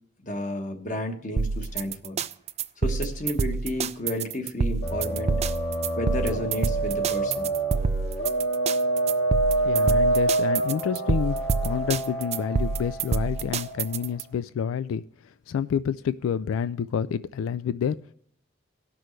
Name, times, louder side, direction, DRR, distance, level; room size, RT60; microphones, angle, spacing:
voice 1, 0.2-2.2 2.8-5.4 5.9-7.5, equal, 40° left, 5 dB, 1.2 m, -32 dB
sound 1, 1.4-14.2, right 4 dB, 30° right, 0.3 m, -27 dB
sound 2, 4.8-14.1, right 2 dB, 60° left, 2.3 m, -27 dB
voice 2, 9.6-11.4 11.6-15.0 15.5-18.0, left 7 dB, 90° left, 15 dB, 0.3 m, -28 dB
18.0 x 6.1 x 3.2 m, 0.65 s
head